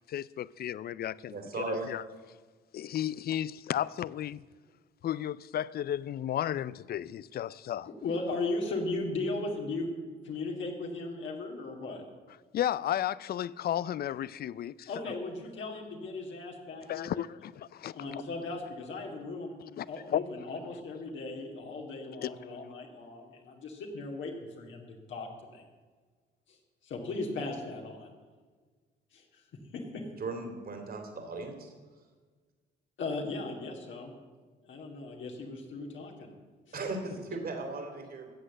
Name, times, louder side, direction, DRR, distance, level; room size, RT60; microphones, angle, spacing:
voice 1, 0.1-1.4 1.7-2.0 2.7-4.4 5.0-7.9 12.5-14.9 16.9-18.2 19.7-20.2 22.2-22.3, left 11 dB, 50° left, 0.4 m, -33 dB
voice 2, 1.3-1.9 30.2-31.7 36.7-38.3, right 3 dB, 50° right, 3.1 m, -37 dB
voice 3, 7.9-12.0 14.9-17.2 17.9-19.5 19.9-25.6 26.5-26.6 26.8-28.1 29.1-29.4 29.7-30.0 33.0-34.1 34.6-36.3, left 3 dB, 70° left, 2.4 m, -37 dB
14.5 x 8.0 x 7.7 m
cardioid pair, 90°, 20 cm